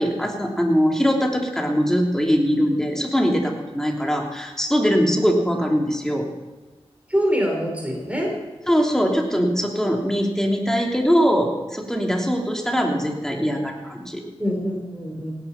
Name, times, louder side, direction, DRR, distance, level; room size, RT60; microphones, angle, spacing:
voice 1, 0.0-6.3 8.7-14.2, equal, 5° left, 1 dB, 3.2 m, -21 dB
voice 2, 7.1-8.3 14.4-15.3, equal, 15° right, 0 dB, 5.0 m, -24 dB
17.0 x 10.5 x 5.9 m, 1.2 s
cardioid pair, 45°, 10 cm